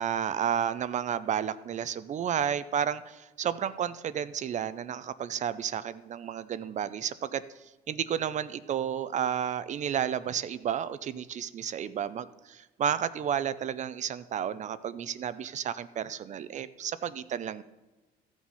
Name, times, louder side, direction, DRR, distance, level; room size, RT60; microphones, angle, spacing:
voice 1, 0.0-7.4 7.9-17.6, right 9 dB, 45° right, 15 dB, 0.5 m, -32 dB
14.0 x 6.1 x 5.6 m, 1.2 s
cardioid pair, 110°, 17 cm